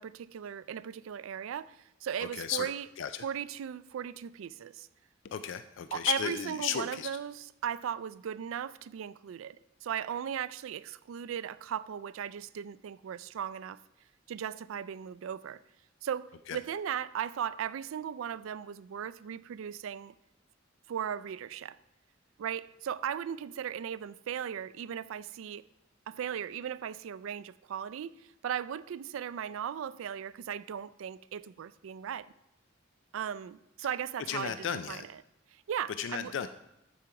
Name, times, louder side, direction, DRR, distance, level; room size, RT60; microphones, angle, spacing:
voice 1, 0.0-2.9 3.2-4.9 5.9-13.8 14.3-15.6 16.0-20.1 20.9-21.8 22.4-25.6 26.1-32.3 33.1-35.2 35.7-36.3, right 8 dB, 85° right, 0.3 m, -37 dB
voice 2, 2.3-2.7 3.0-3.2 5.3-7.1 16.5-16.6 34.3-35.0 36.0-36.5, left 8 dB, 65° left, 0.4 m, -34 dB
13.0 x 5.1 x 4.7 m
head